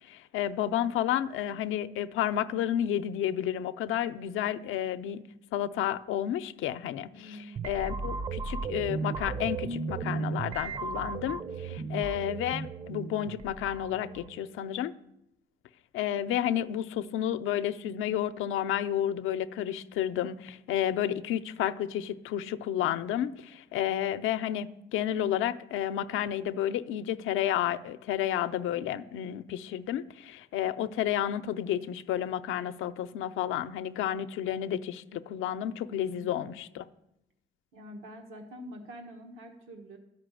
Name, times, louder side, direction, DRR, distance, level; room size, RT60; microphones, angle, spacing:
voice 1, 0.0-5.2 5.5-14.9 15.9-36.8, left 11 dB, 85° left, 0.6 m, -31 dB
voice 2, 7.1-7.6 11.7-12.1 36.2-36.6 37.7-40.0, equal, 85° right, 1.5 m, -46 dB
sound 1, 7.6-14.4, right 4 dB, 30° right, 0.6 m, -35 dB
12.5 x 5.8 x 9.0 m
cardioid pair, 100°, 20 cm